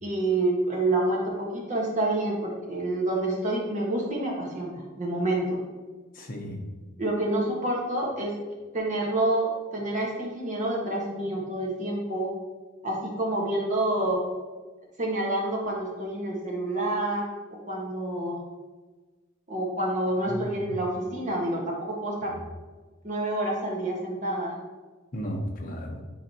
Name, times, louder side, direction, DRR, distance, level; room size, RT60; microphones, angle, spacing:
voice 1, 0.0-5.6 7.0-8.3 8.7-12.3 12.8-14.2 15.0-17.2 17.7-18.4 19.5-22.3 23.0-24.6, right 1 dB, 40° right, -2 dB, 1.6 m, -28 dB
voice 2, 6.1-6.6 20.3-20.8 22.2-22.4 25.1-26.0, equal, 45° left, 1 dB, 1.1 m, -35 dB
9.8 x 4.1 x 3.0 m, 1.3 s
head